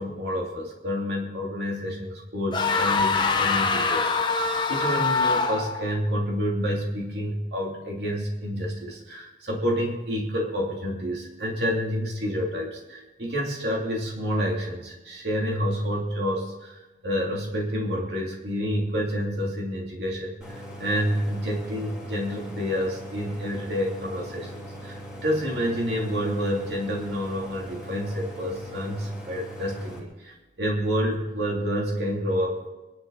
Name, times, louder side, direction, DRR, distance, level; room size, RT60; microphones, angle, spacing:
voice 1, 0.0-32.7, equal, 75° right, -2 dB, 3.1 m, -29 dB
sound 1, 2.5-5.9, left 4 dB, 25° left, 1.0 m, -24 dB
Idling, 20.4-30.0, equal, 5° right, 3.2 m, -40 dB
25.5 x 11.5 x 4.2 m, 1.1 s
head